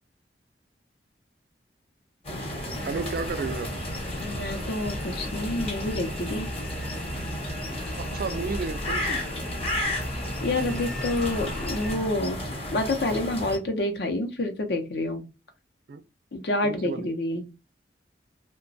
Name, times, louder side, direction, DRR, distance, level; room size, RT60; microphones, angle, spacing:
sound 1, 2.2-13.6, left 1 dB, 35° left, 0.9 m, -33 dB
sound 2, 2.7-12.0, equal, 5° left, 0.5 m, -37 dB
voice 1, 2.8-3.7 8.0-9.2 15.9-16.0 16.6-17.1, right 4 dB, 55° right, 0.4 m, -32 dB
voice 2, 4.2-6.5 10.4-12.4 12.7-15.3 16.3-17.5, left 2 dB, 65° left, 0.6 m, -28 dB
2.9 x 2.2 x 2.6 m
head